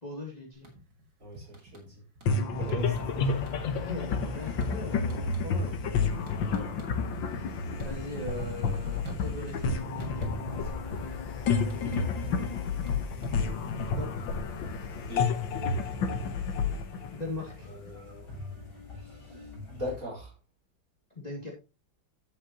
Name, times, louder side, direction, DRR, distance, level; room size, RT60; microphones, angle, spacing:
voice 1, 0.0-0.7 3.8-5.9 7.8-10.0 11.5-12.1 14.0-14.3 17.1-17.7 21.1-21.5, left 2 dB, 20° left, 2.4 m, -40 dB
sound 1, 0.5-1.0 1.3-2.4 2.7-3.2 3.4-7.3 7.6-9.7 10.0-10.9 11.1-14.0, equal, 65° right, 3.3 m, -44 dB
voice 2, 1.2-2.0 2.5-3.0 6.4-6.7 10.5-10.8 14.9-15.3 17.7-18.3 19.0-20.3, equal, 45° right, 5.0 m, -41 dB
sound 2, 2.3-17.9, left 4 dB, 80° left, 1.9 m, -30 dB
sound 3, 2.8-20.0, left 3 dB, 55° left, 5.2 m, -49 dB
10.5 x 8.1 x 2.9 m
omnidirectional pair, 2.0 m